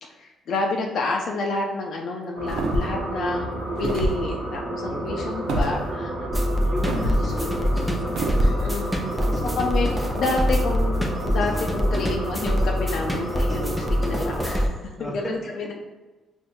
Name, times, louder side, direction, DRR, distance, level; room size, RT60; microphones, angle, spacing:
voice 1, 0.0-5.8 7.0-7.7 8.4-8.9 9.6-14.7 15.0-15.7, left 3 dB, 65° left, 1 dB, 0.4 m, -29 dB
sound 1, 2.4-14.6, right 1 dB, 60° right, 0.8 m, -31 dB
sound 2, 2.5-3.0 3.8-4.2 5.5-5.7 6.9-7.2 8.2-8.6, right 1 dB, 75° right, 0.5 m, -25 dB
voice 2, 4.9-5.2 5.6-5.8 6.6-7.1 7.9-8.3 8.9-9.5 15.0-15.3, equal, 10° left, -2 dB, 0.9 m, -35 dB
sound 3, 6.3-14.7, equal, 5° right, 0.5 m, -25 dB
5.0 x 2.6 x 2.2 m, 1.2 s
cardioid pair, 90°, 0 cm